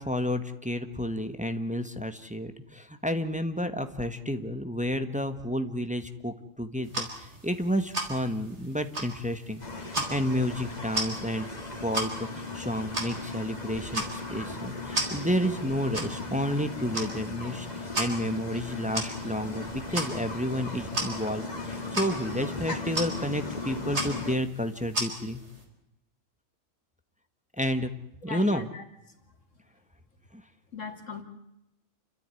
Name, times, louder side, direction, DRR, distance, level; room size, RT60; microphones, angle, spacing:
voice 1, 0.0-11.5 11.8-25.4 27.6-27.9 28.2-28.7 30.3-30.4, equal, 5° right, 8 dB, 1.3 m, -31 dB
sound 1, 6.8-25.6, right 1 dB, 60° right, 4.5 m, -37 dB
sound 2, 9.6-24.3, left 3 dB, 30° left, 2.3 m, -37 dB
voice 2, 28.2-28.8 30.7-31.2, left 4 dB, 70° left, 5 dB, 3.0 m, -38 dB
29.0 x 13.0 x 9.8 m, 0.88 s
omnidirectional pair, 1.3 m